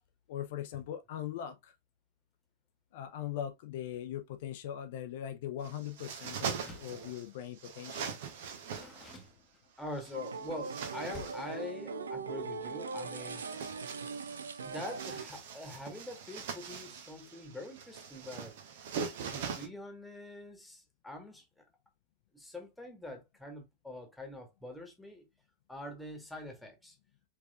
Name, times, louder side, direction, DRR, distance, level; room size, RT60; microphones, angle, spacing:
voice 1, 0.3-1.7 2.9-8.2, left 10 dB, 55° left, 0.6 m, -40 dB
sound 1, 5.6-7.3 7.6-9.2 9.9-11.5 13.2-19.7, right 6 dB, 55° right, 0.8 m, -42 dB
Door, 6.5-7.1 8.2-9.9 11.1-11.6, left 4 dB, 25° left, 0.9 m, -52 dB
voice 2, 9.8-13.5 14.6-18.6 19.2-21.5 22.3-25.3 25.7-27.0, left 1 dB, 5° left, 1.5 m, -44 dB
sound 2, 10.1-15.3, right 4 dB, 70° right, 0.5 m, -40 dB
4.8 x 3.5 x 2.4 m
figure-of-eight pair, 90°, 0 cm